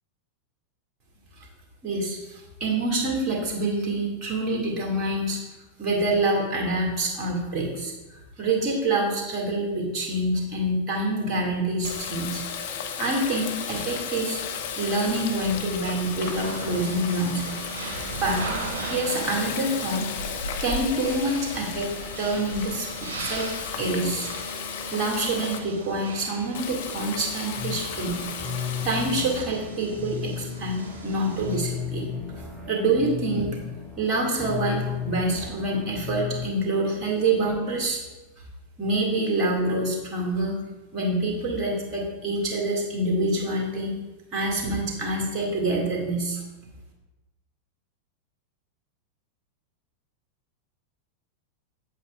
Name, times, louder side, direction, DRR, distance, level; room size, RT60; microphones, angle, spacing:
voice 1, 1.8-5.4 5.8-7.9 8.4-12.4 13.0-14.4 14.8-17.6 18.2-18.4 18.9-20.1 20.6-21.9 22.2-23.5 23.8-24.3 24.9-28.2 28.8-32.1 32.7-33.6 34.0-38.0 38.8-40.6 40.9-43.9 44.3-46.4, right 2 dB, 30° right, -1 dB, 2.0 m, -26 dB
Water tap faucet, 11.8-25.6 26.5-29.4, left 6 dB, 55° left, 0.6 m, -34 dB
sound 1, 16.2-31.6, right 3 dB, 60° right, 1.6 m, -38 dB
sound 2, 27.6-36.5, left 6 dB, 5° right, 1.0 m, -34 dB
8.0 x 8.0 x 2.4 m, 1.1 s
figure-of-eight pair, 90°, 0 cm